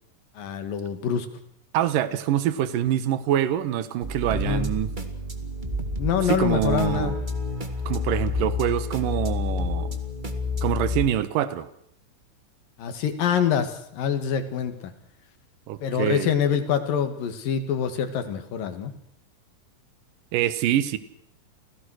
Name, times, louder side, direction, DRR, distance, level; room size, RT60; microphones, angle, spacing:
voice 1, 0.4-1.3 4.3-4.7 6.0-7.1 12.8-14.9 15.8-18.9, left 8 dB, 80° left, 9 dB, 3.6 m, -25 dB
voice 2, 1.7-4.9 6.2-7.1 7.9-10.0 10.6-11.7 15.7-16.3 20.3-21.0, right 11 dB, 75° right, 14 dB, 2.8 m, -25 dB
sound 1, 4.0-11.1, left 3 dB, 20° right, 1.2 m, -29 dB
29.0 x 17.0 x 6.4 m, 0.70 s
omnidirectional pair, 4.0 m